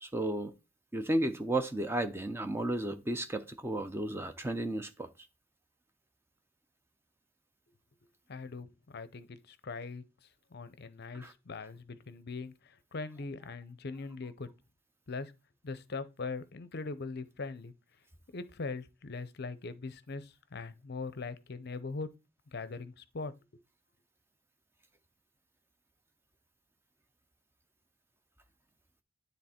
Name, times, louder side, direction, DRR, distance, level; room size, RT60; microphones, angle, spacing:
voice 1, 0.0-0.5 0.9-5.1 11.1-11.3, right 1 dB, 10° right, 0.5 m, -33 dB
voice 2, 8.3-10.0 10.5-14.5 15.1-15.3 15.6-17.7 18.3-22.1 22.5-23.3, left 4 dB, 50° left, 0.6 m, -41 dB
10.0 x 3.4 x 4.3 m
head